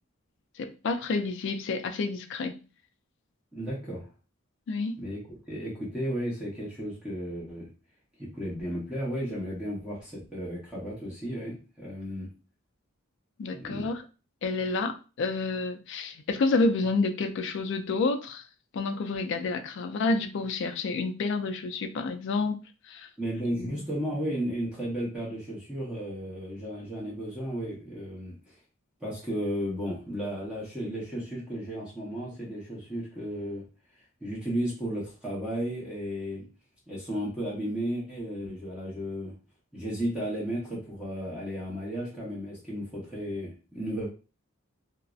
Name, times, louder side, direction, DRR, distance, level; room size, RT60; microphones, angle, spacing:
voice 1, 0.6-2.6 4.7-5.0 13.4-14.0 14.4-18.4 18.7-22.6 22.9-23.1 23.6-23.8, left 3 dB, 60° left, 0.3 m, -29 dB
voice 2, 3.5-4.1 5.0-7.7 8.2-12.3 13.5-13.9 23.2-28.4 29.0-33.6 34.2-36.4 36.9-39.3 39.7-44.1, equal, 5° right, 0.7 m, -34 dB
2.5 x 2.0 x 2.3 m
head